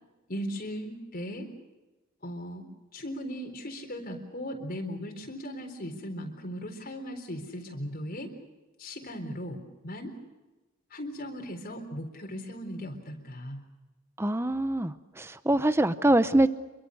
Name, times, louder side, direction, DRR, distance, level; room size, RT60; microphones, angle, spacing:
voice 1, 0.3-1.5 2.2-2.6 2.9-8.3 8.8-10.1 10.9-13.6, equal, 45° left, 3 dB, 3.9 m, -38 dB
voice 2, 14.2-16.5, right 1 dB, 10° right, 12 dB, 0.8 m, -24 dB
27.5 x 23.5 x 6.5 m, 1.1 s
head